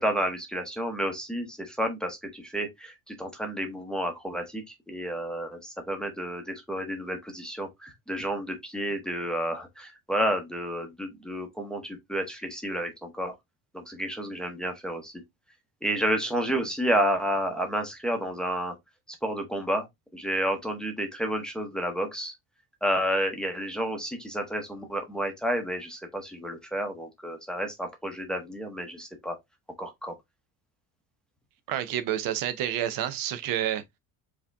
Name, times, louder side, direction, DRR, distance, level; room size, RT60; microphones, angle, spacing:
voice 1, 0.0-13.3 13.7-15.1 15.8-18.7 19.2-19.9 20.1-22.3 22.8-29.4 29.8-30.1, equal, ahead, 0.7 m, -30 dB
voice 2, 31.7-33.8, right 11 dB, 60° right, 0.7 m, -29 dB
4.8 x 2.9 x 3.3 m
cardioid pair, 170°, 39 cm